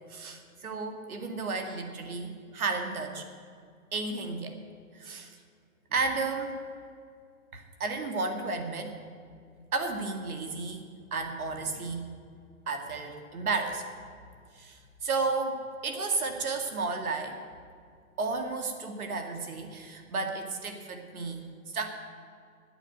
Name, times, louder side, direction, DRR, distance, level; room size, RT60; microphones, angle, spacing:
voice 1, 0.1-3.2 3.9-4.6 4.9-5.4 5.9-6.5 7.5-8.9 9.7-10.9 11.1-12.1 12.7-13.8 14.6-15.6 15.8-17.4 18.2-21.4 21.7-21.9, right 3 dB, 75° right, 5 dB, 2.1 m, -32 dB
9.7 x 9.1 x 9.0 m, 2.3 s
hypercardioid pair, 170°, 43 cm